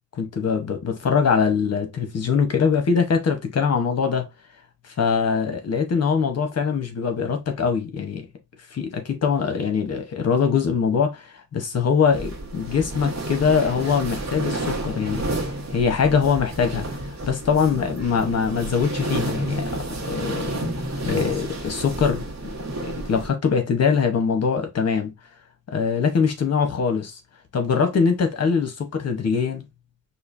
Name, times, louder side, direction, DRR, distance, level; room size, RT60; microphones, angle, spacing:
voice 1, 0.2-4.3 5.0-8.3 8.7-15.4 15.7-16.9 17.2-20.6 21.0-22.5 22.8-25.1 25.7-27.2 27.5-29.6, left 6 dB, 55° left, 0.9 m, -22 dB
sound 1, 12.1-23.3, right 1 dB, 60° right, 1.3 m, -30 dB
5.0 x 2.6 x 2.6 m
wide cardioid pair, 160°, 31 cm